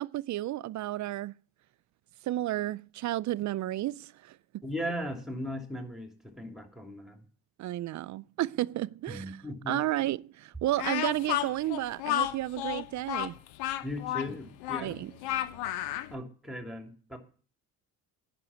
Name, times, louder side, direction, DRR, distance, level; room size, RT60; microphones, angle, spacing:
voice 1, 0.0-1.4 2.2-4.4 7.6-9.3 9.7-13.4 14.8-15.1, right 15 dB, 50° right, 0.4 m, -32 dB
voice 2, 4.6-7.2 9.1-9.8 13.8-15.0 16.1-17.2, left 1 dB, ahead, 2.8 m, -38 dB
Speech, 10.8-16.1, left 13 dB, 85° left, 1.0 m, -32 dB
9.8 x 6.2 x 8.7 m
cardioid pair, 90°, 37 cm